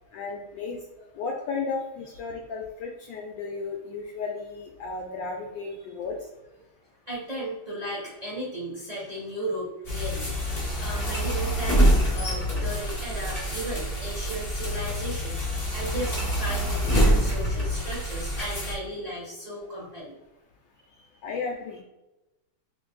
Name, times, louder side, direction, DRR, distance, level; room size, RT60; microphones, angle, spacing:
voice 1, 0.1-0.8 1.2-6.2 21.2-21.8, left 4 dB, 75° left, 0 dB, 1.1 m, -34 dB
voice 2, 7.1-20.2 20.9-21.1, right 1 dB, 25° right, -7 dB, 1.0 m, -35 dB
sound 1, 9.8-18.7, equal, 30° left, 0.7 m, -26 dB
3.3 x 2.6 x 3.8 m, 0.97 s
omnidirectional pair, 2.3 m